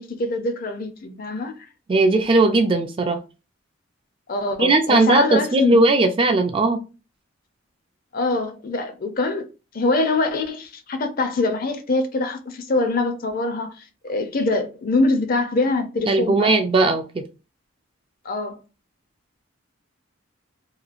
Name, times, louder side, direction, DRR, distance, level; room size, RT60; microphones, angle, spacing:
voice 1, 0.0-1.7 4.3-5.8 8.1-9.5 9.7-16.5 18.2-18.6, left 2 dB, 45° left, 0.4 m, -24 dB
voice 2, 1.9-3.2 4.6-6.8 16.1-17.2, right 2 dB, 25° right, 0.3 m, -18 dB
2.9 x 2.3 x 2.4 m
head